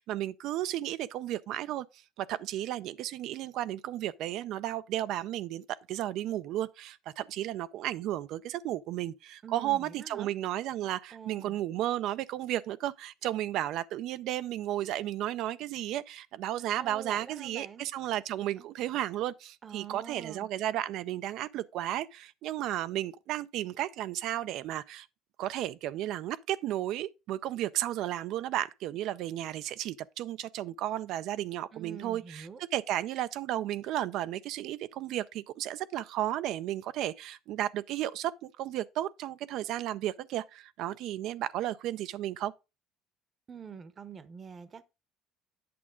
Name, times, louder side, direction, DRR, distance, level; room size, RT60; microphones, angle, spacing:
voice 1, 0.0-1.9 2.2-25.1 25.4-42.5, right 13 dB, 65° right, 0.4 m, -33 dB
voice 2, 9.4-10.3 11.1-11.6 16.8-17.9 18.6-18.7 19.6-20.5 31.7-32.6 43.5-44.8, right 6 dB, 30° right, 0.8 m, -45 dB
8.6 x 6.1 x 3.6 m
cardioid pair, 125°, 0 cm